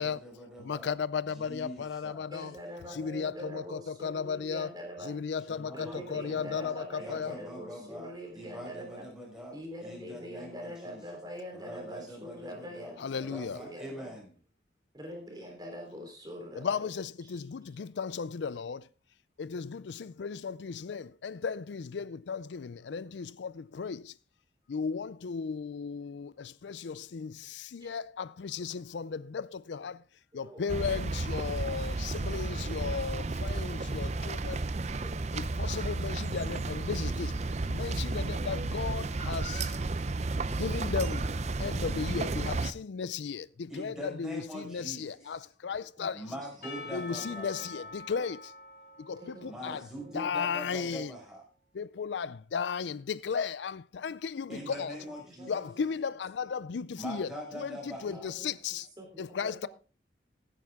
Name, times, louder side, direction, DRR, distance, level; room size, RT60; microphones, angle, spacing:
voice 1, 0.0-1.0 1.2-2.3 5.4-9.5 9.8-11.0 11.5-12.9 13.2-14.3 43.7-45.5 46.1-47.9 49.4-51.4 54.5-55.5 57.0-58.3, equal, 5° right, 5.6 m, -44 dB
voice 2, 0.6-2.5 2.9-4.7 5.0-7.4 13.0-13.6 16.6-18.9 19.4-24.1 24.7-30.0 30.3-34.6 35.3-37.4 37.7-39.8 40.5-41.3 41.6-46.2 46.9-48.5 49.0-49.9 50.1-51.1 51.7-55.0 55.5-58.9 59.2-59.7, left 6 dB, 85° left, 0.4 m, -35 dB
voice 3, 2.3-5.2 5.7-9.1 9.5-14.1 14.9-16.9 17.2-17.3 27.8-27.9 30.3-30.6 33.7-33.8 35.0-35.3 46.0-46.5 46.8-47.3 49.2-50.3 54.5-54.9 55.3-55.9 58.1-58.5 59.0-59.7, equal, 20° right, 3.7 m, -44 dB
sound 1, 30.7-42.7, right 3 dB, 40° right, 0.6 m, -32 dB
Percussion / Church bell, 46.6-51.0, left 2 dB, 55° left, 6.0 m, -47 dB
16.0 x 9.5 x 3.6 m
head